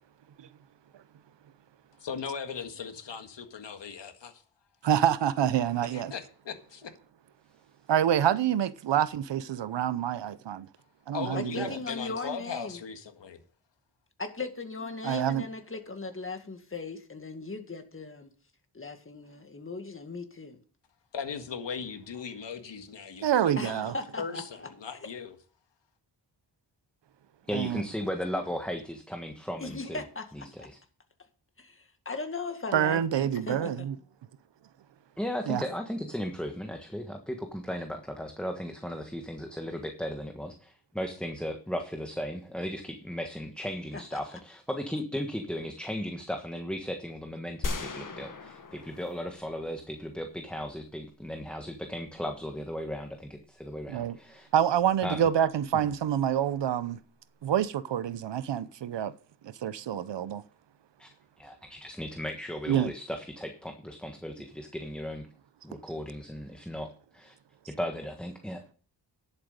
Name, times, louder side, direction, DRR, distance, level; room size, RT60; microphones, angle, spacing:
voice 1, 2.0-4.4 5.9-6.9 11.1-13.4 21.1-23.9 24.2-25.4, left 6 dB, 80° left, 1.7 m, -38 dB
voice 2, 4.8-6.1 7.9-10.7 11.1-11.7 15.0-15.5 23.2-23.9 27.5-27.8 32.7-34.0 35.5-35.6 53.9-54.2 54.5-57.0 57.4-59.1 59.4-60.4 62.7-62.9, right 10 dB, 75° right, 0.7 m, -27 dB
voice 3, 11.3-12.8 14.2-18.3 18.7-20.6 23.6-24.7 29.6-30.7 31.6-33.7 43.9-44.2, left 3 dB, 30° left, 1.9 m, -38 dB
voice 4, 27.5-30.0 30.3-30.8 35.2-54.5 55.0-55.2 55.7-55.8 61.0-61.1 61.4-65.2 65.6-67.3 67.7-68.6, equal, ahead, 1.3 m, -36 dB
sound 1, 47.6-50.0, left 3 dB, 45° left, 1.6 m, -37 dB
11.0 x 7.9 x 5.2 m
wide cardioid pair, 90°, 43 cm